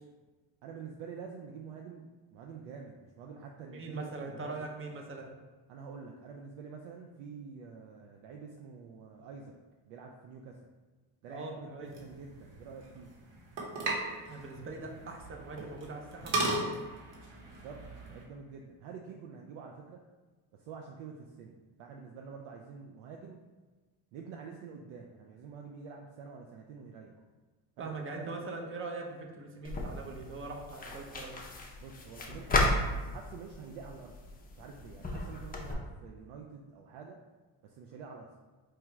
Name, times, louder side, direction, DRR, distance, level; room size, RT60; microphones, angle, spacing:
voice 1, 0.6-2.1 2.3-4.7 5.7-9.5 9.9-10.6 11.2-13.1 17.5-17.8 18.1-20.0 20.5-23.4 24.1-27.2 27.8-28.4 31.8-34.1 34.5-37.2 37.6-38.3, right 5 dB, 75° right, 1 dB, 0.5 m, -47 dB
voice 2, 3.6-5.3 11.3-11.9 14.3-16.8 27.8-31.4, right 3 dB, 25° right, 2 dB, 0.6 m, -42 dB
sound 1, 11.8-18.2, right 2 dB, 55° right, 1.2 m, -37 dB
sound 2, 29.6-35.7, left 2 dB, 20° left, 0.5 m, -34 dB
4.6 x 2.3 x 3.0 m, 1.3 s
supercardioid pair, 95°, 50 cm